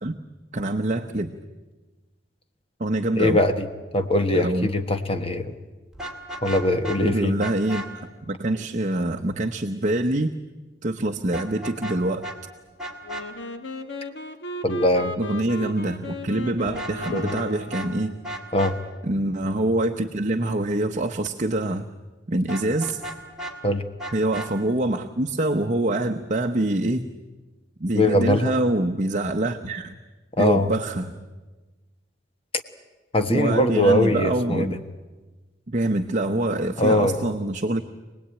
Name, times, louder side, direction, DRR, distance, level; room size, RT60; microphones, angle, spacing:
voice 1, 0.5-1.3 2.8-3.4 4.3-4.7 7.0-7.8 8.3-10.3 10.8-12.3 15.2-18.2 19.0-21.9 22.3-23.0 24.1-27.1 27.8-30.0 30.4-31.2 33.3-34.8 35.7-37.8, right 1 dB, 40° right, 5 dB, 0.9 m, -25 dB
voice 2, 3.2-3.7 3.9-5.6 6.4-7.3 14.6-15.1 17.1-17.4 18.5-18.8 23.6-23.8 27.9-28.5 30.4-30.7 33.1-34.7 36.8-37.2, left 1 dB, 30° left, 7 dB, 1.3 m, -21 dB
Vehicle horn car horn honking, 5.9-7.0 7.4-7.9 11.3-12.0 12.2-12.4 12.8-13.2 16.6-17.4 17.7-17.9 18.2-18.7 22.5-23.5 24.0-24.5, right 1 dB, 5° right, 2.8 m, -34 dB
Wind instrument woodwind instrument, 13.0-18.2, left 2 dB, 80° left, 1.9 m, -36 dB
26.0 x 19.0 x 9.0 m, 1.2 s
head